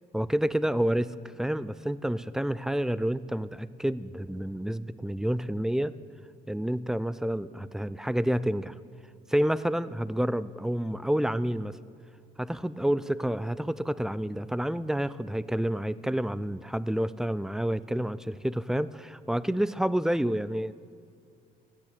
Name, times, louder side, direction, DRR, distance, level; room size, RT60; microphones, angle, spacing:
voice 1, 0.1-5.9 6.5-8.8 9.3-11.8 12.4-20.7, right 1 dB, 5° right, 17 dB, 0.3 m, -29 dB
14.0 x 9.0 x 7.8 m, 2.3 s
cardioid pair, 110°, 17 cm